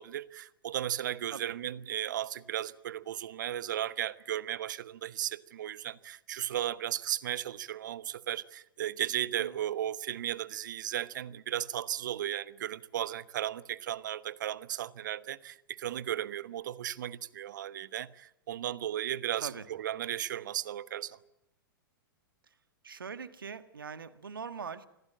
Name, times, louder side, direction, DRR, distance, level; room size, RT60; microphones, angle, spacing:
voice 1, 0.0-21.2, right 11 dB, 60° right, 1.1 m, -35 dB
voice 2, 22.8-24.9, right 6 dB, 75° right, 1.6 m, -42 dB
25.0 x 16.5 x 8.8 m
figure-of-eight pair, 105°, 12 cm